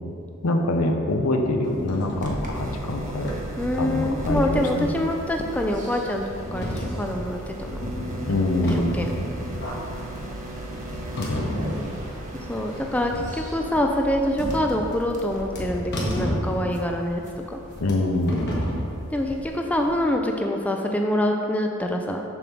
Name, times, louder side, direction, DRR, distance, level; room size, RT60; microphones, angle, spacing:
voice 1, 0.4-3.3 3.8-4.9 8.3-9.0 11.2-11.8 17.8-18.4, left 2 dB, 80° left, 4 dB, 0.7 m, -25 dB
sound 1, 1.6-19.9, equal, 50° left, 1.3 m, -33 dB
sound 2, 2.2-19.4, right 1 dB, 35° right, 0.9 m, -37 dB
voice 2, 3.6-6.2 6.5-7.8 9.0-9.1 12.5-17.2 17.5-17.6 19.1-22.2, left 1 dB, 5° left, 2 dB, 0.4 m, -25 dB
7.0 x 3.6 x 5.9 m, 2.5 s
head